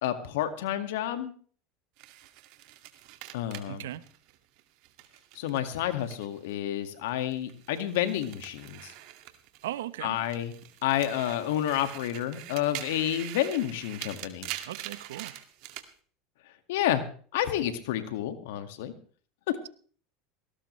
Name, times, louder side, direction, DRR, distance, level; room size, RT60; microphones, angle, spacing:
voice 1, 0.0-1.3 3.3-3.9 5.4-8.9 10.0-10.5 10.8-14.5 16.7-17.0 17.3-18.9, left 11 dB, 75° left, 9 dB, 2.0 m, -30 dB
sound 1, 2.0-6.5 6.8-9.8 10.2-15.9, right 15 dB, 65° right, 2.2 m, -44 dB
voice 2, 3.7-4.0 9.6-10.2 14.7-15.3, right 13 dB, 85° right, 16 dB, 1.0 m, -37 dB
19.5 x 17.5 x 3.3 m, 0.43 s
hypercardioid pair, 100°, 0 cm